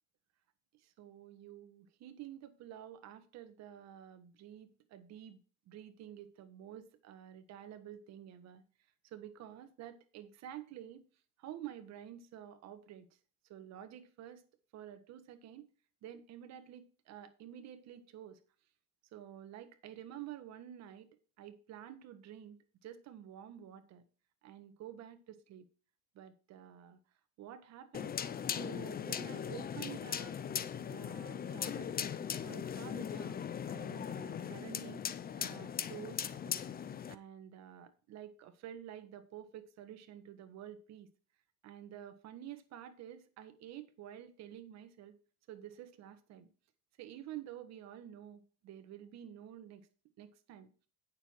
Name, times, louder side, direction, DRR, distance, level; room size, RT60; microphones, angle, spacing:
voice 1, 0.7-5.4 5.7-8.6 9.0-11.0 11.4-13.1 13.5-14.4 14.7-15.7 16.0-18.4 19.1-24.0 24.4-25.6 26.1-27.0 27.4-28.2 28.5-30.4 30.9-32.0 32.4-35.0 35.4-41.1 41.6-45.2 45.5-46.5 47.0-49.9 50.2-50.7, right 11 dB, 60° right, 1.6 m, -50 dB
sound 1, 27.9-37.1, left 8 dB, 30° left, 0.7 m, -39 dB
9.1 x 6.8 x 4.6 m
supercardioid pair, 100°, 30 cm